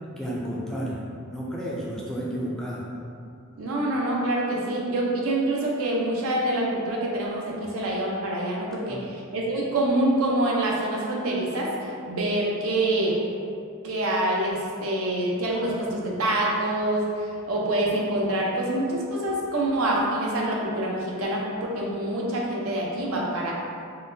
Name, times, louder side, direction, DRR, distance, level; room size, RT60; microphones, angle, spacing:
voice 1, 0.2-2.8 8.9-9.0, equal, 5° left, -5 dB, 0.3 m, -32 dB
voice 2, 3.6-13.2 13.8-23.5, right 1 dB, 80° right, -3 dB, 0.6 m, -26 dB
3.8 x 2.1 x 2.6 m, 2.4 s
head